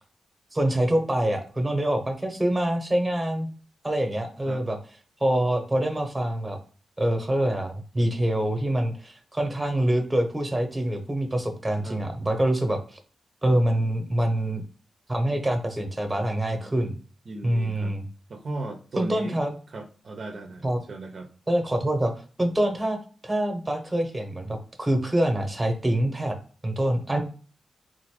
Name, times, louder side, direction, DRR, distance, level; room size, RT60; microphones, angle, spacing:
voice 1, 0.5-3.5 3.8-4.8 5.2-6.6 7.0-13.0 13.4-14.6 15.1-17.0 17.4-18.1 19.0-19.6 20.6-20.8 21.5-22.1 22.4-23.0 23.2-26.4 26.6-27.2, right 1 dB, 15° right, 5 dB, 0.9 m, -25 dB
voice 2, 16.5-16.8 17.3-18.0 18.3-19.4 19.7-21.3, right 2 dB, 50° right, 4 dB, 0.6 m, -37 dB
4.0 x 2.5 x 4.7 m, 0.39 s
wide cardioid pair, 115°, 0 cm